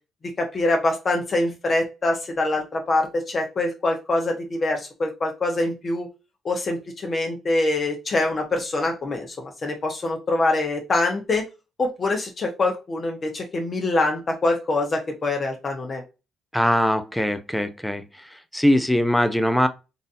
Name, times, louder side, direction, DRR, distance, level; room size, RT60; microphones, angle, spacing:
voice 1, 0.4-6.1 6.4-11.4 11.8-16.0, left 2 dB, 40° left, 1.0 m, -24 dB
voice 2, 16.5-18.0 18.3-19.7, equal, 5° left, 0.6 m, -21 dB
4.0 x 2.6 x 2.6 m
cardioid pair, 90°, 0 cm